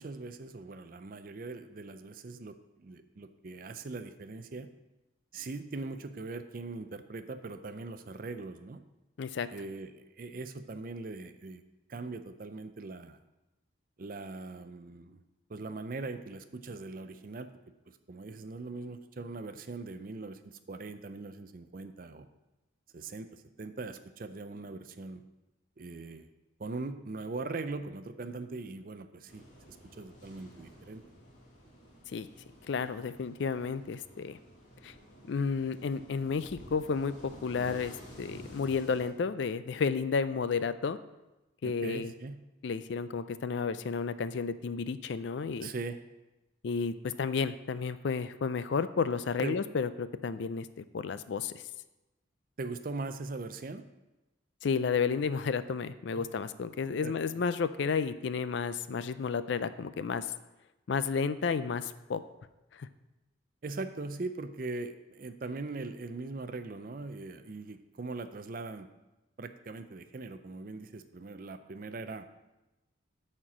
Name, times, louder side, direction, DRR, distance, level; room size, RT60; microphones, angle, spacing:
voice 1, 0.0-4.7 5.3-8.8 9.5-11.6 11.9-13.2 14.0-15.2 15.5-17.5 17.9-22.3 22.9-25.2 25.8-26.3 26.6-31.0 41.6-42.4 45.6-46.0 49.4-49.6 52.6-53.8 56.2-56.3 57.0-57.4 63.6-68.9 69.4-72.3, right 3 dB, 45° right, 10 dB, 0.5 m, -41 dB
sound 1, 29.3-39.1, equal, 35° left, 1.9 m, -52 dB
voice 2, 32.7-34.4 34.8-34.9 35.3-41.0 41.6-42.1 42.6-45.7 46.6-51.6 54.6-60.3 60.9-62.2 62.7-62.9, left 5 dB, 65° left, 13 dB, 0.4 m, -32 dB
8.9 x 4.4 x 6.0 m, 1.0 s
head